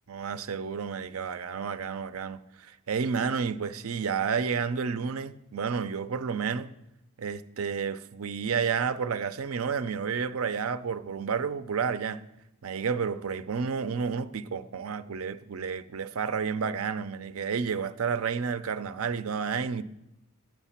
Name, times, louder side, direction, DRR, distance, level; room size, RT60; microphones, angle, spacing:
voice 1, 0.1-6.7 7.2-12.2 12.6-19.8, right 6 dB, 70° right, 0.5 m, -31 dB
12.0 x 8.1 x 5.8 m
head